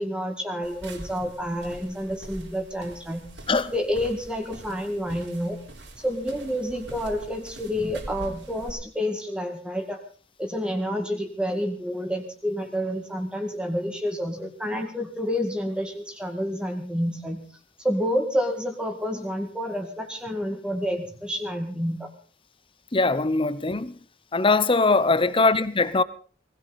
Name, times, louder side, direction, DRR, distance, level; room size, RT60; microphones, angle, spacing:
voice 1, 0.0-3.3 3.7-5.6 6.0-10.0 10.4-17.5 17.8-22.1, equal, 5° right, 2.1 m, -29 dB
sound 1, 0.6-8.7, right 1 dB, 90° right, 4.0 m, -43 dB
voice 2, 22.9-24.0 24.3-26.0, left 3 dB, 30° left, 0.9 m, -21 dB
19.5 x 17.0 x 4.2 m
head